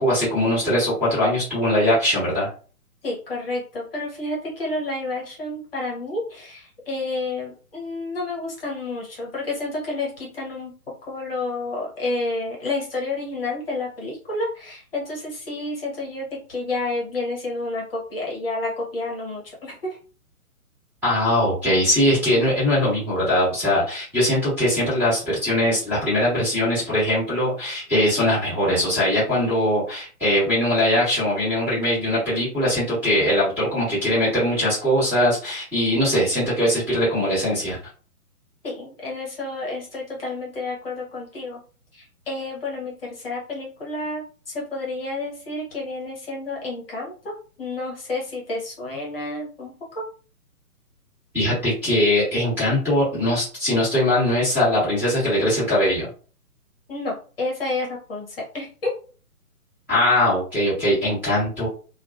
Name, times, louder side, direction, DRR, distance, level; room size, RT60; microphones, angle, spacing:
voice 1, 0.0-2.5 21.0-37.8 51.3-56.1 59.9-61.7, left 1 dB, 5° right, -11 dB, 1.1 m, -21 dB
voice 2, 3.0-10.7 11.0-20.0 38.6-41.6 41.9-50.0 56.9-58.9, left 2 dB, 40° left, -3 dB, 1.0 m, -30 dB
2.7 x 2.3 x 2.3 m, 0.38 s
figure-of-eight pair, 135°, 45 cm